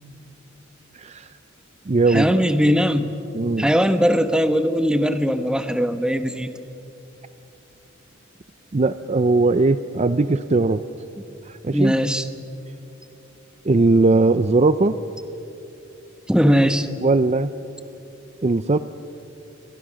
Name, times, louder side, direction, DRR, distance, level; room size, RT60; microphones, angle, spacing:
voice 1, 0.9-1.3 1.9-2.4 3.3-3.7 8.7-10.8 11.5-11.9 13.6-15.0 17.0-17.5 18.4-18.8, right 3 dB, 35° right, 12 dB, 0.5 m, -19 dB
voice 2, 2.1-3.2 3.6-6.5 11.7-12.3 16.3-16.9, equal, 5° right, 9 dB, 1.1 m, -19 dB
29.0 x 23.5 x 6.4 m, 2.8 s
head